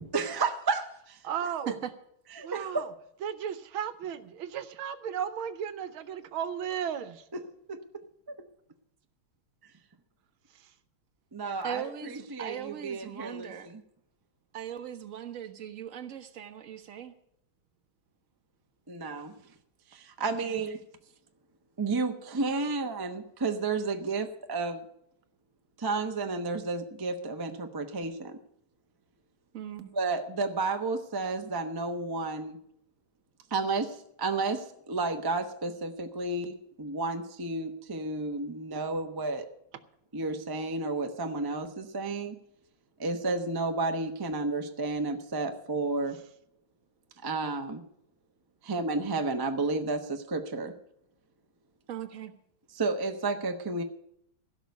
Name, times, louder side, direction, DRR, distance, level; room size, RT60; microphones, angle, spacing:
voice 1, 0.1-1.2 2.5-2.8 11.3-13.8 18.9-19.3 19.9-20.8 21.8-24.8 25.8-28.4 29.9-32.6 33.5-39.5 40.1-42.4 43.0-46.2 47.2-47.8 48.6-50.7 52.7-53.8, right 3 dB, 30° right, 5 dB, 0.4 m, -31 dB
voice 2, 1.2-1.7 2.4-2.9 3.2-7.2 10.5-10.7, right 8 dB, 75° right, 12 dB, 1.7 m, -35 dB
voice 3, 11.6-13.7 14.5-17.1 20.2-20.6 29.5-29.9 51.9-52.3, right 9 dB, 45° right, 7 dB, 1.2 m, -40 dB
16.0 x 6.1 x 9.4 m, 0.75 s
omnidirectional pair, 2.3 m